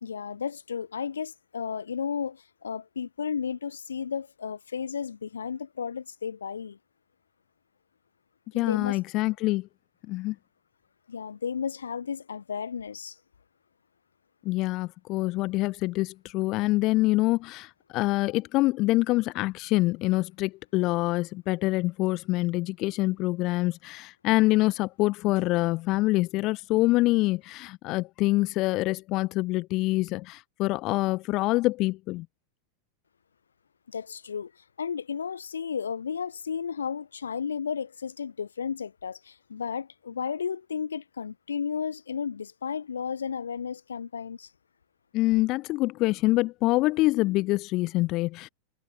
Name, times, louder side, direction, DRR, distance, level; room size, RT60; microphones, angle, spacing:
voice 1, 0.0-6.8 8.5-9.0 11.1-13.2 33.9-44.5, left 6 dB, 70° left, 0.9 m, -33 dB
voice 2, 8.5-9.7 10.1-10.4 14.4-32.3 45.1-48.5, left 20 dB, 40° left, 0.6 m, -25 dB
figure-of-eight pair, 90°, 0 cm